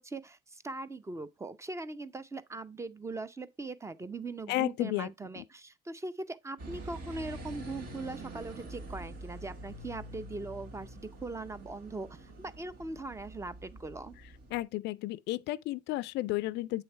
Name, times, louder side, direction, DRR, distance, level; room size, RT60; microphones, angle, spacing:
voice 1, 0.0-14.2, right 3 dB, 15° right, 0.6 m, -40 dB
voice 2, 4.5-5.1 5.4-5.5 14.5-16.8, left 17 dB, 60° left, 0.4 m, -32 dB
sound 1, 6.6-14.6, right 1 dB, 50° right, 1.7 m, -46 dB
8.0 x 3.2 x 4.3 m
supercardioid pair, 90°, 20 cm